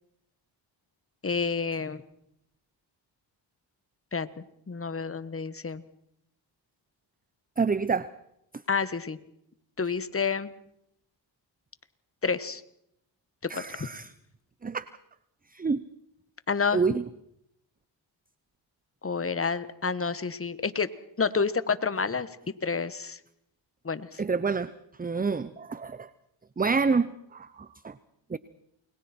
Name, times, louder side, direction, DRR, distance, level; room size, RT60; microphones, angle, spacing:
voice 1, 1.2-2.0 4.1-4.3 4.7-5.8 8.7-9.2 9.8-10.5 12.2-12.6 13.5-13.9 16.5-16.8 19.0-20.9 21.2-22.3 22.6-23.2 23.8-24.2, left 5 dB, 30° left, 14 dB, 1.5 m, -29 dB
voice 2, 7.6-8.1 13.5-14.1 14.6-14.9 15.5-15.8 16.7-17.0 24.2-24.7 25.0-26.1 26.6-27.9 28.3-28.4, right 4 dB, 20° right, 16 dB, 0.8 m, -27 dB
29.0 x 21.5 x 4.5 m, 0.77 s
cardioid pair, 65°, 48 cm